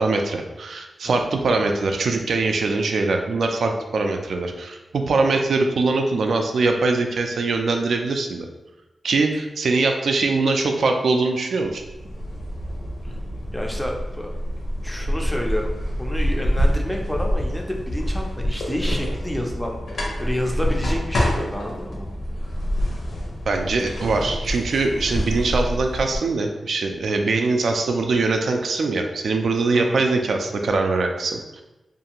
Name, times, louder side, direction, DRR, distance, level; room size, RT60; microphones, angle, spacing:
voice 1, 0.0-8.5 9.0-11.8 23.5-31.6, right 3 dB, 80° right, 4 dB, 0.3 m, -22 dB
sound 1, 11.7-26.2, equal, 80° left, 0.6 m, -26 dB
voice 2, 13.5-14.3 14.8-22.1 29.7-30.0, left 1 dB, 5° left, 1 dB, 0.3 m, -30 dB
2.5 x 2.4 x 2.9 m, 1.0 s
wide cardioid pair, 160°, 0 cm